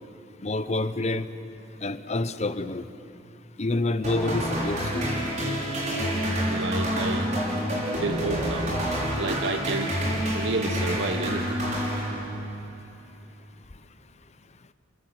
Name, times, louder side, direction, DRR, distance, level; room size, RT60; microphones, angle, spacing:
voice 1, 0.4-1.3 1.8-2.8 3.6-5.0, left 2 dB, 35° left, 11 dB, 0.9 m, -27 dB
sound 1, 4.0-12.6, equal, 40° right, 6.3 m, -28 dB
voice 2, 6.4-7.3 8.0-8.7 9.2-9.9 10.3-11.6, right 3 dB, 75° right, 7 dB, 1.1 m, -30 dB
29.5 x 22.0 x 8.0 m, 2.7 s
head